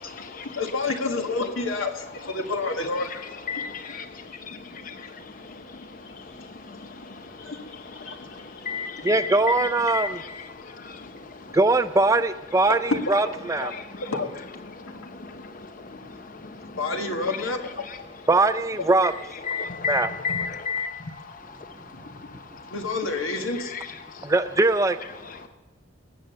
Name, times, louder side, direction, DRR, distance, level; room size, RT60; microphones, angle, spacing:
voice 1, 0.0-5.7 6.1-6.9 7.2-9.1 10.1-10.2 10.8-11.2 13.1-13.3 13.6-14.3 16.8-17.8 22.7-23.7, left 3 dB, 75° left, 5 dB, 1.7 m, -32 dB
voice 2, 3.5-4.1 4.5-4.6 4.9-5.0 8.7-9.3 9.6-9.7 9.9-10.1 19.5-20.9, left 6 dB, 40° left, 8 dB, 0.7 m, -30 dB
voice 3, 9.0-10.2 11.5-13.7 18.3-19.1 19.9-20.1 24.2-25.0, right 2 dB, 15° right, 12 dB, 0.4 m, -21 dB
20.0 x 7.7 x 6.8 m, 1.2 s
head